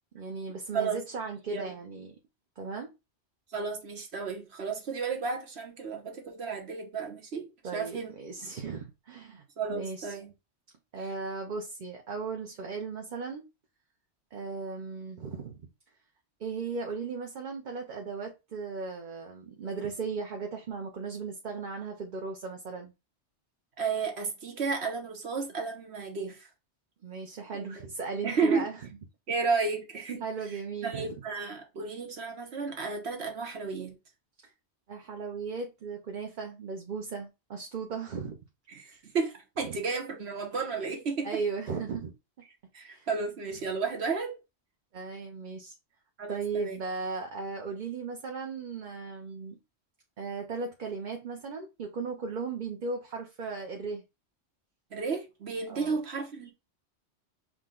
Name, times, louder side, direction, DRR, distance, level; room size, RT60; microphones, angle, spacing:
voice 1, 0.1-2.2 2.6-2.9 7.6-10.2 10.9-13.4 14.3-15.7 16.4-22.9 27.0-28.8 30.2-31.2 34.4-34.5 34.9-38.4 38.8-38.9 39.7-39.8 41.2-42.1 42.9-43.1 44.9-45.8 46.3-49.6 50.2-54.0 55.7-56.0, right 4 dB, 50° right, 0.8 m, -37 dB
voice 2, 3.5-8.1 9.6-10.3 11.0-11.1 23.8-26.5 27.6-27.8 28.2-28.7 29.3-30.2 30.8-33.9 38.7-41.3 42.7-44.3 46.2-46.8 54.9-56.5, right 4 dB, 70° right, 1.2 m, -32 dB
6.2 x 2.2 x 3.7 m
omnidirectional pair, 1.1 m